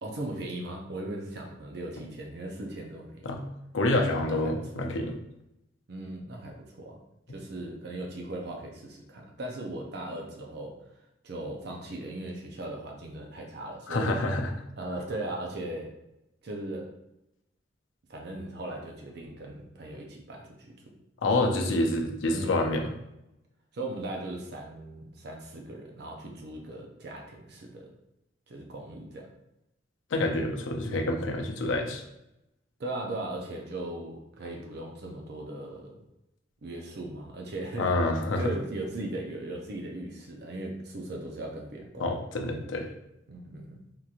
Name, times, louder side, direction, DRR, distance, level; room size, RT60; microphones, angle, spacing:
voice 1, 0.0-3.3 4.3-4.9 5.9-7.0 7.3-10.7 11.2-14.1 14.8-15.9 16.4-16.9 18.1-20.9 22.3-22.8 23.7-27.9 28.5-29.3 32.8-36.0 36.6-37.9 38.4-42.2 43.3-43.8, right 1 dB, 60° right, 1 dB, 0.5 m, -38 dB
voice 2, 3.7-5.1 13.9-14.5 21.2-22.9 30.1-32.0 37.8-38.4 42.0-42.9, left 2 dB, 85° left, 3 dB, 0.5 m, -27 dB
3.6 x 2.9 x 2.4 m, 0.87 s
head